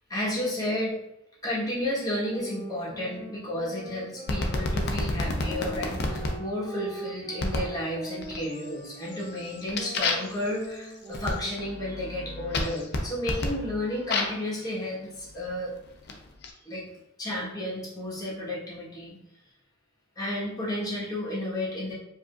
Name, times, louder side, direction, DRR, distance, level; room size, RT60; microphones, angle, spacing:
voice 1, 0.1-1.0 1.4-15.7 16.6-16.8 17.2-19.2 20.2-21.9, left 1 dB, 20° left, -7 dB, 1.3 m, -32 dB
sound 1, 2.3-11.9, right 2 dB, 40° right, 0.6 m, -42 dB
sound 2, 4.3-6.3 7.4-7.7 8.2-8.7 9.1-14.5 15.3-16.5, left 2 dB, 55° left, 0.5 m, -31 dB
4.7 x 2.7 x 2.5 m, 0.84 s
head